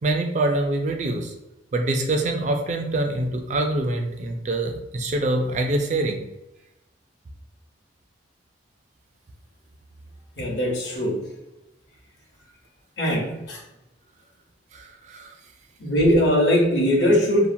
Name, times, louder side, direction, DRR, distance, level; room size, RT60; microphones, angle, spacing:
voice 1, 0.0-1.3 1.7-6.2 14.7-15.3, right 2 dB, 40° right, 4 dB, 0.3 m, -25 dB
voice 2, 10.4-11.2 13.0-13.6 15.8-17.5, equal, 60° left, -2 dB, 0.9 m, -20 dB
2.8 x 2.1 x 2.6 m, 0.90 s
head